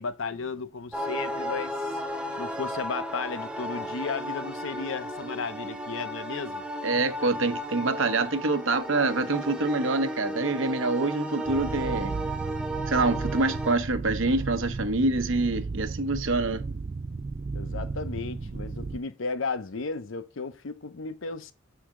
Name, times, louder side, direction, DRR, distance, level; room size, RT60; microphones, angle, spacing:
voice 1, 0.0-2.0 2.4-6.6 17.5-21.5, left 4 dB, 80° left, 0.7 m, -34 dB
sound 1, 0.9-13.8, equal, 5° right, 0.8 m, -34 dB
voice 2, 6.8-12.1 12.9-16.6, right 3 dB, 75° right, 0.9 m, -26 dB
sound 2, 11.4-19.0, right 3 dB, 30° right, 0.3 m, -34 dB
7.4 x 5.0 x 3.7 m
head